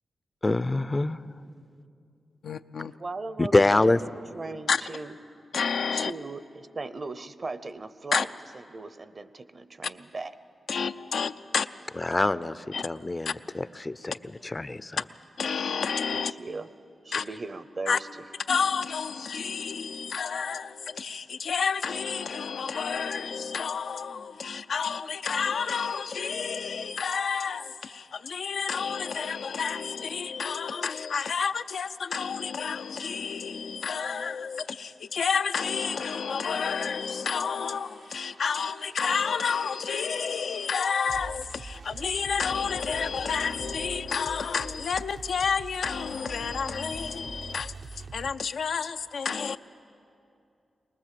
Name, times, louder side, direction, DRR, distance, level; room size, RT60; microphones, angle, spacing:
voice 1, 0.4-1.2 3.4-4.0 12.0-15.0, left 2 dB, 25° left, 16 dB, 0.5 m, -25 dB
voice 2, 2.4-2.9 4.7-4.8 5.5-6.1 8.1-8.2 10.7-11.6 12.7-12.9 13.3-13.4 15.4-16.3 17.1-17.2 17.9-18.0 18.5-47.7 48.1-49.6, left 6 dB, 80° left, 9 dB, 0.5 m, -30 dB
voice 3, 3.0-5.1 5.9-8.3 8.5-10.3 16.1-16.7 17.0-18.2, right 3 dB, 45° right, 14 dB, 0.7 m, -38 dB
sound 1, 36.6-48.3, right 4 dB, 75° right, 0.8 m, -45 dB
23.0 x 19.5 x 7.6 m, 2.6 s
cardioid pair, 80°, 0 cm